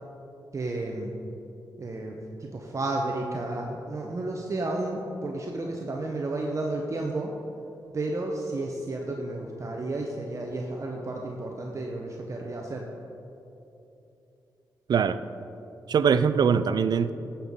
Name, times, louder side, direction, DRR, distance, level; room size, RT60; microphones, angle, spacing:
voice 1, 0.5-1.1 1.8-7.3 7.9-12.9, right 2 dB, 40° right, 0 dB, 0.8 m, -32 dB
voice 2, 14.9-15.2 15.9-17.1, right 6 dB, 60° right, 14 dB, 0.4 m, -22 dB
12.0 x 5.7 x 3.7 m, 2.9 s
cardioid pair, 65°, 8 cm